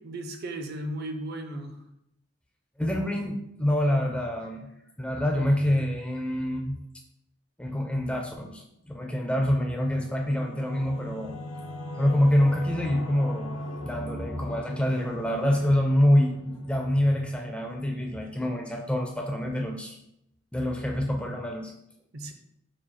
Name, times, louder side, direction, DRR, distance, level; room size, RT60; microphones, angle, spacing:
voice 1, 0.0-1.8 22.1-22.3, right 1 dB, 50° right, 6 dB, 0.5 m, -35 dB
voice 2, 2.8-4.7 5.0-6.8 7.6-11.4 12.0-13.6 13.8-20.0 20.5-21.7, left 1 dB, 5° left, 2 dB, 0.4 m, -26 dB
Singing / Musical instrument, 9.6-18.8, left 1 dB, 65° left, 0.5 m, -40 dB
4.6 x 2.3 x 4.1 m, 0.80 s
head